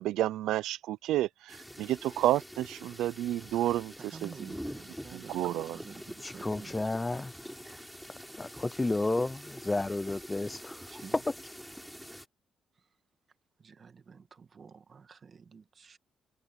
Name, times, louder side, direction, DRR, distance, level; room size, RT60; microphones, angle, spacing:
voice 1, 0.0-3.9 4.2-4.3 5.1-5.8, right 14 dB, 85° right, 0.4 m, -30 dB
sound 1, 1.5-12.3, equal, ahead, 3.3 m, -46 dB
voice 2, 4.0-7.0 10.9-11.2 12.8-12.9 13.6-16.0, right 5 dB, 45° right, 1.7 m, -49 dB
voice 3, 6.2-7.3 8.4-11.0, left 2 dB, 15° left, 0.5 m, -32 dB
cardioid pair, 90°, 0 cm